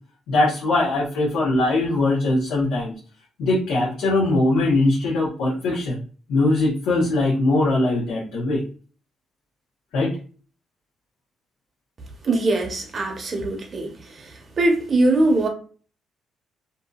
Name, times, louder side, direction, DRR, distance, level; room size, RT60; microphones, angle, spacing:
voice 1, 0.3-2.9 3.4-6.0 6.3-8.6 9.9-10.1, left 2 dB, 85° left, 0.8 m, -21 dB
voice 2, 12.2-13.9 14.6-15.5, right 2 dB, 40° right, 0.8 m, -21 dB
2.7 x 2.6 x 2.3 m
cardioid pair, 90°, 0 cm